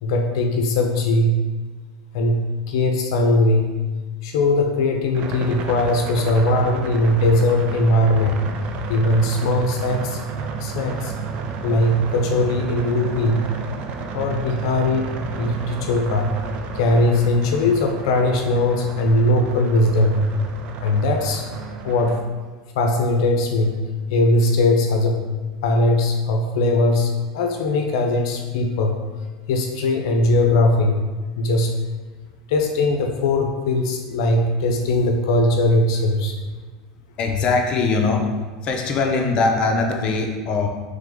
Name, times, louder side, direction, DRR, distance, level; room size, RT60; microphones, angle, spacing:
voice 1, 0.0-1.4 2.1-2.4 2.7-3.7 4.2-8.4 8.9-10.2 10.6-11.1 11.6-13.5 14.1-16.3 16.7-20.2 20.8-21.4 21.8-22.2 22.8-23.8 24.1-25.2 25.6-28.9 29.5-31.0 31.4-31.7 32.5-36.3, left 2 dB, 75° left, 3 dB, 0.5 m, -20 dB
sound 1, 5.1-22.2, right 4 dB, 45° right, 0.4 m, -31 dB
voice 2, 37.2-38.3 38.6-40.7, left 3 dB, 40° left, 2 dB, 0.6 m, -21 dB
3.5 x 3.3 x 3.6 m, 1.3 s
supercardioid pair, 125°, 3 cm